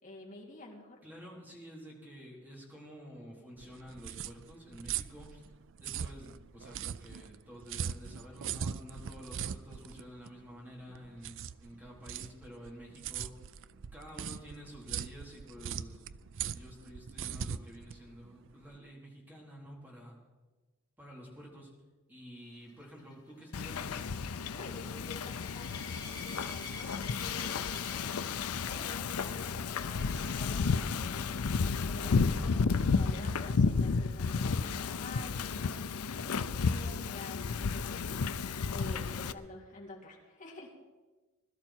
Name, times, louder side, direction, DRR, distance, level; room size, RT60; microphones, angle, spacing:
voice 1, 0.0-1.0 24.5-28.0 28.7-38.2 38.7-40.7, left 2 dB, 35° left, -2 dB, 3.2 m, -49 dB
voice 2, 1.0-5.5 5.8-13.3 13.9-16.1 16.4-20.2 21.0-21.7 22.1-23.9, equal, 10° right, -4 dB, 4.1 m, -50 dB
sound 1, 3.6-18.8, right 8 dB, 60° right, 0.4 m, -40 dB
sound 2, 22.7-30.6 31.2-31.5 31.8-31.9 32.3-32.4 36.0-36.1, left 4 dB, 20° left, 2.8 m, -49 dB
Wind / Ocean, 23.5-39.3, left 5 dB, 85° left, 0.6 m, -32 dB
21.0 x 13.0 x 4.5 m, 1.3 s
head